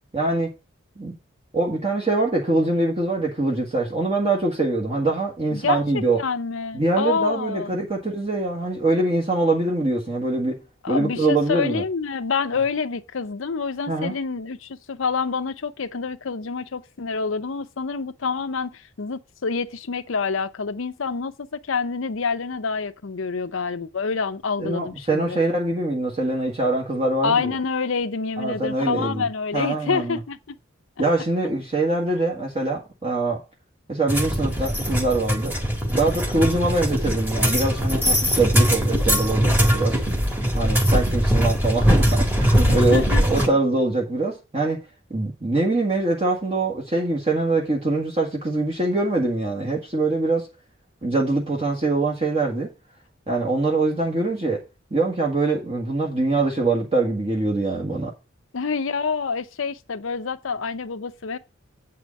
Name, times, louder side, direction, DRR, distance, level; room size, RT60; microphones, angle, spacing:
voice 1, 0.1-0.5 1.0-1.2 1.5-6.2 6.7-10.6 10.9-11.8 13.9-14.1 24.6-27.5 28.4-29.3 29.5-30.2 31.0-33.4 33.9-35.5 35.9-40.0 40.6-44.8 45.1-50.5 51.0-52.7 53.3-54.6 54.9-58.1, right 2 dB, 30° right, 1.6 m, -23 dB
voice 2, 5.5-7.8 10.8-25.4 27.2-30.6 42.7-43.2 58.5-61.4, left 5 dB, 80° left, 0.7 m, -27 dB
sound 1, 34.1-43.5, equal, 10° right, 1.8 m, -21 dB
8.5 x 4.8 x 6.3 m
head